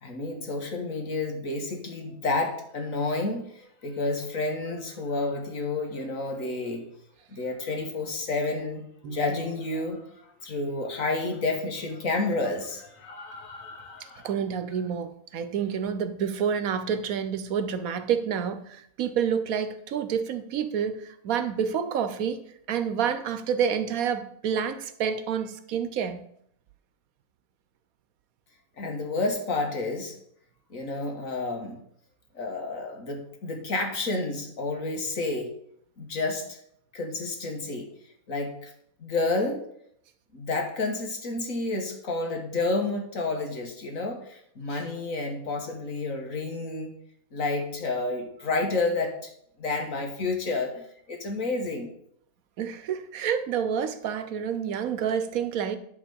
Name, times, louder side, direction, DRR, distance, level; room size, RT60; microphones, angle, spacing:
voice 1, 0.0-6.8 7.3-14.3 28.8-30.2 30.7-31.8 32.3-35.5 36.0-36.6 36.9-37.9 38.3-38.7 39.0-39.6 40.3-46.9 47.3-49.3 49.6-51.9, left 3 dB, 70° left, 1.9 m, -30 dB
voice 2, 9.0-9.4 14.2-22.4 22.7-26.2 44.7-44.8 52.6-55.8, right 7 dB, 80° right, 1.2 m, -28 dB
11.0 x 3.8 x 6.9 m
omnidirectional pair, 1.5 m